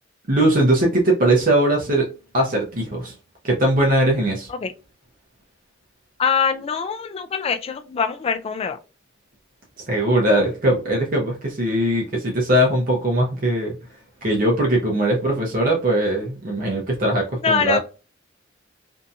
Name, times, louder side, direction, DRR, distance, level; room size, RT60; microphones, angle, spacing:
voice 1, 0.3-2.1 2.3-3.1 3.4-4.5 9.9-13.7 14.2-17.8, right 1 dB, 45° right, 0.7 m, -20 dB
voice 2, 6.2-8.8 17.4-17.8, left 6 dB, 30° left, 0.3 m, -23 dB
2.7 x 2.6 x 2.2 m
head